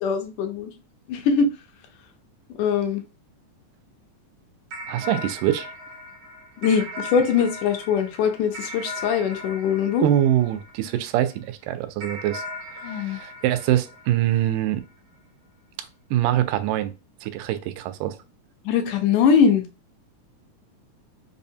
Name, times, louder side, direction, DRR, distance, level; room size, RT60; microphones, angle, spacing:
voice 1, 0.0-0.7 1.1-1.5 2.6-3.0 6.6-10.1 12.8-13.2 18.7-19.6, left 6 dB, 80° left, 2.1 m, -22 dB
sound 1, 4.7-11.3 12.0-14.8, left 1 dB, 60° right, 1.1 m, -38 dB
voice 2, 4.9-5.7 10.0-12.4 12.9-14.8 16.1-16.9 17.2-18.2, right 12 dB, 85° right, 2.1 m, -24 dB
5.4 x 2.1 x 2.7 m
omnidirectional pair, 3.6 m